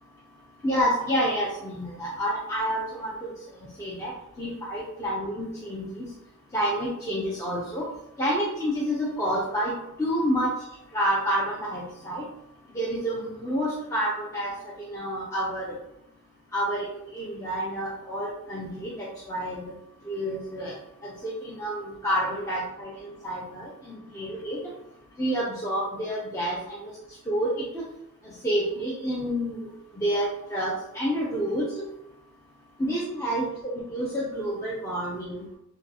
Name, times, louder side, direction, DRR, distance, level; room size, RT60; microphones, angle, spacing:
voice 1, 0.6-3.3 3.8-4.1 4.4-6.1 6.5-7.8 8.2-9.7 10.0-10.5 10.9-12.3 12.7-14.5 14.8-15.7 16.5-16.9 17.1-19.7 20.1-20.8 21.0-24.6 25.2-26.9 27.3-27.8 28.2-29.7 30.0-31.7 32.8-33.5 33.7-35.4, equal, 15° left, -6 dB, 0.6 m, -29 dB
6.6 x 2.3 x 2.8 m, 0.85 s
head